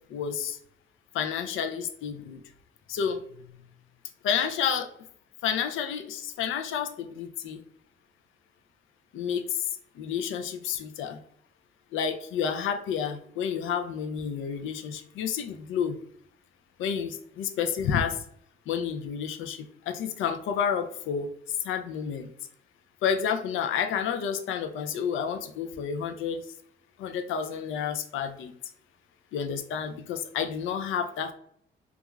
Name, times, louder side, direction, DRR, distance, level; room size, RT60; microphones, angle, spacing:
voice 1, 0.1-0.6 1.1-2.4 2.9-3.2 4.2-4.9 5.4-7.6 9.1-9.6 10.0-11.2 11.9-16.0 16.8-18.2 18.7-21.3 21.6-22.3 23.0-26.4 27.0-28.5 29.3-31.3, left 7 dB, 80° left, 7 dB, 0.4 m, -30 dB
2.3 x 2.3 x 3.0 m, 0.66 s
cardioid pair, 90°, 20 cm